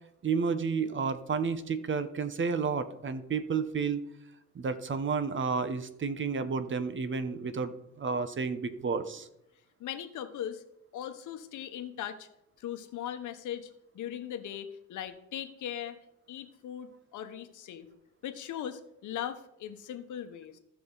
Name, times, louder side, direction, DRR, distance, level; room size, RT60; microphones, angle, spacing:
voice 1, 0.2-4.0 4.5-7.7 8.0-9.3, right 5 dB, 40° right, 11 dB, 1.0 m, -31 dB
voice 2, 9.8-10.6 10.9-12.3 12.6-13.7 13.9-16.0 16.3-17.9 18.2-20.6, left 10 dB, 75° left, 8 dB, 1.2 m, -39 dB
15.5 x 5.9 x 4.0 m, 0.81 s
cardioid pair, 90°, 30 cm